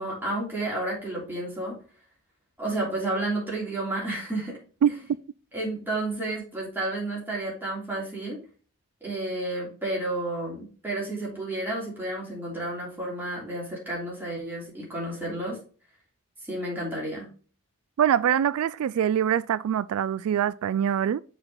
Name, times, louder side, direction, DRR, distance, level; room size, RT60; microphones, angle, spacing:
voice 1, 0.0-1.8 2.6-4.6 4.9-5.0 5.5-8.4 9.0-15.6 16.5-17.3, right 2 dB, 10° right, 3.0 m, -31 dB
voice 2, 18.0-21.2, right 9 dB, 85° right, 0.3 m, -24 dB
6.6 x 4.4 x 3.8 m
head